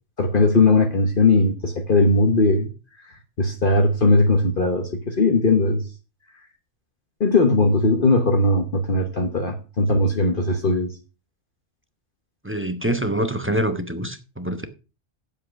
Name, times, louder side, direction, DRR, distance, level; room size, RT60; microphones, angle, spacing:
voice 1, 0.2-2.7 3.4-5.8 7.2-10.9, left 2 dB, 45° left, 1.3 m, -19 dB
voice 2, 12.4-14.7, right 1 dB, 10° right, 0.9 m, -25 dB
8.7 x 7.6 x 5.9 m
omnidirectional pair, 1.3 m